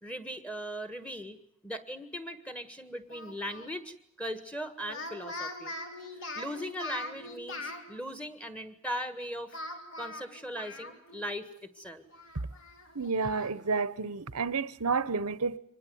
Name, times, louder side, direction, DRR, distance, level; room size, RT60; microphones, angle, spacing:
voice 1, 0.0-1.4 1.6-5.7 6.1-9.6 10.0-12.0, equal, 5° left, 1.6 m, -39 dB
Speech, 3.1-3.7 4.8-7.8 9.5-11.3 11.6-11.7 12.1-13.5, left 2 dB, 60° left, 4.3 m, -42 dB
voice 2, 12.9-15.6, right 4 dB, 90° right, 1.1 m, -30 dB
25.0 x 20.0 x 9.4 m
head